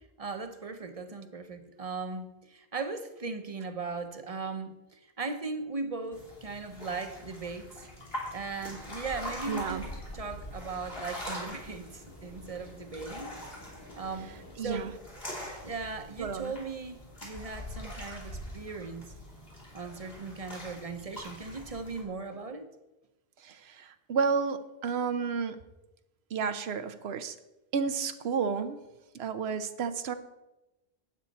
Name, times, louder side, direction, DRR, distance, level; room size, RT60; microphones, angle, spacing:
voice 1, 0.2-7.8 8.3-13.4 13.9-14.3 14.6-14.9 15.6-19.1 19.7-22.7, right 4 dB, 40° right, 8 dB, 0.9 m, -38 dB
sound 1, 6.1-22.0, left 1 dB, 70° left, 3.7 m, -43 dB
sound 2, 8.5-14.6, left 1 dB, 55° left, 2.0 m, -49 dB
voice 2, 9.5-9.9 14.6-14.9 16.2-16.5 23.4-25.6 26.3-27.4 27.7-28.8 29.1-30.1, right 5 dB, 85° right, 10 dB, 0.9 m, -31 dB
12.0 x 8.7 x 4.2 m, 0.98 s
omnidirectional pair, 1.0 m